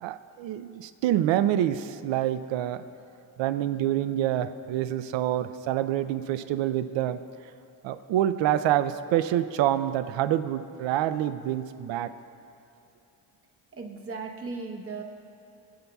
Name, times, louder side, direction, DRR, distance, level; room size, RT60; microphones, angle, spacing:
voice 1, 0.0-2.8 3.4-7.2 7.8-12.1, right 12 dB, 90° right, 12 dB, 0.5 m, -27 dB
voice 2, 13.7-15.0, right 4 dB, 30° right, 2 dB, 0.9 m, -36 dB
20.5 x 8.4 x 2.3 m, 2.7 s
cardioid pair, 165°, 43 cm